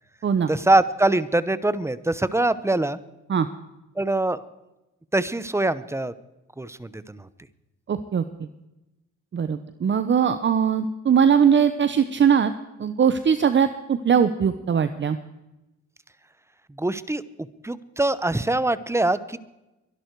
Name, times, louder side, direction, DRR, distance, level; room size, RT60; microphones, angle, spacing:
voice 1, 0.5-3.0 4.0-4.4 5.1-6.1 6.6-7.3 16.8-17.2 17.6-19.4, right 2 dB, 10° right, 16 dB, 0.9 m, -23 dB
voice 2, 7.9-8.2 9.3-12.5 12.8-15.2, right 7 dB, 40° right, 11 dB, 0.9 m, -20 dB
23.5 x 11.5 x 4.7 m, 0.98 s
cardioid pair, 90°, 30 cm